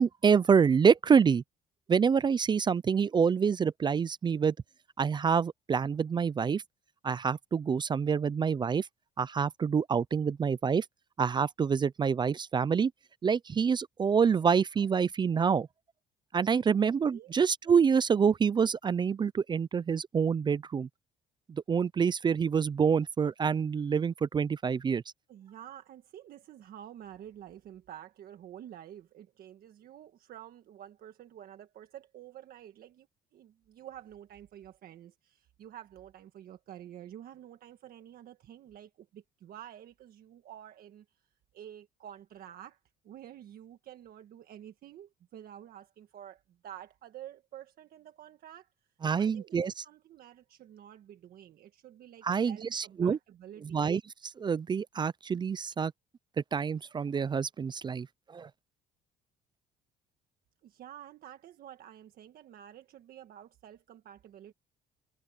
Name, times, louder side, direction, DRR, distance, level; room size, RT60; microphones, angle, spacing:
voice 1, 0.0-1.4 1.9-4.5 5.0-6.6 7.0-8.9 9.2-10.9 11.2-12.9 13.2-15.7 16.3-20.9 21.5-25.0 49.0-49.8 52.2-53.2 53.6-55.9 56.5-58.5, right 6 dB, 25° right, 0.4 m, -27 dB
voice 2, 25.3-33.1 33.3-41.0 41.5-42.8 43.0-48.7 49.1-49.6 49.8-53.8 60.6-64.5, right 11 dB, 60° right, 1.6 m, -49 dB
cardioid pair, 110°, 17 cm